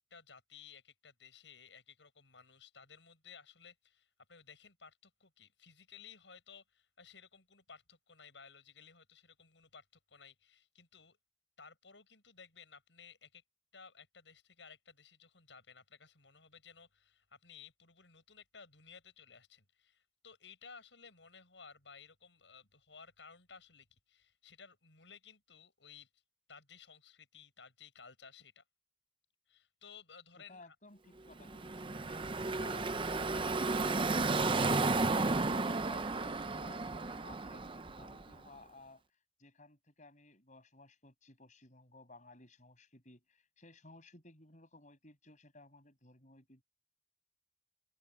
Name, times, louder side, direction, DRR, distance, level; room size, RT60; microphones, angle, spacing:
voice 1, 0.0-11.2 11.6-13.4 13.7-26.1 26.5-28.6 29.5-30.7, left 6 dB, 75° left, 7.6 m, -57 dB
voice 2, 30.4-32.3 32.6-39.0 39.4-46.6, left 2 dB, 40° left, 7.5 m, -58 dB
Car passing by / Traffic noise roadway noise, 31.4-38.3, right 3 dB, 30° right, 0.7 m, -33 dB
open air
head